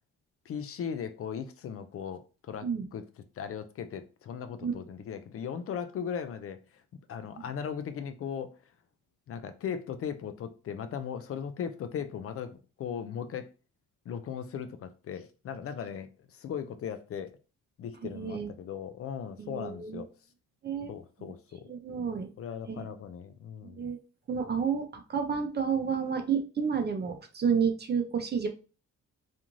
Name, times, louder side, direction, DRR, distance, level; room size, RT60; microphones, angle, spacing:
voice 1, 0.5-3.0 3.4-6.6 7.1-8.6 9.3-13.5 14.1-17.3 17.8-20.1 20.9-21.7 22.4-23.9, left 7 dB, 50° left, 0.4 m, -38 dB
voice 2, 18.0-18.5 19.4-20.0 20.6-20.9 21.7-22.3 22.7-22.9 23.6-24.0 24.3-28.5, right 6 dB, 35° right, 0.6 m, -30 dB
2.5 x 2.4 x 3.0 m
cardioid pair, 90°, 30 cm